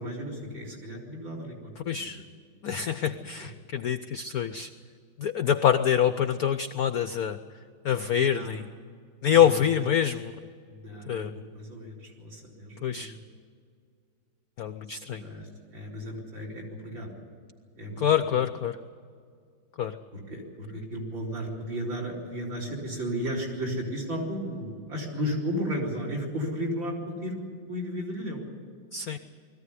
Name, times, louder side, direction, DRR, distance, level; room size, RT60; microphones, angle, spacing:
voice 1, 0.0-1.6 1.9-2.1 3.0-3.1 3.4-3.5 8.1-8.5 9.2-9.5 10.7-11.3 11.5-13.2 15.2-17.1 17.8-18.1 20.1-28.4, equal, 65° right, 0 dB, 5.2 m, -34 dB
voice 2, 1.8-2.2 2.6-4.7 5.2-7.4 7.8-8.7 9.2-10.3 11.1-11.4 12.8-13.1 14.6-15.3 18.0-18.8 19.8-20.0 20.7-20.8 28.9-29.2, left 9 dB, 70° left, 11 dB, 0.8 m, -26 dB
21.0 x 15.0 x 9.7 m, 2.1 s
omnidirectional pair, 2.3 m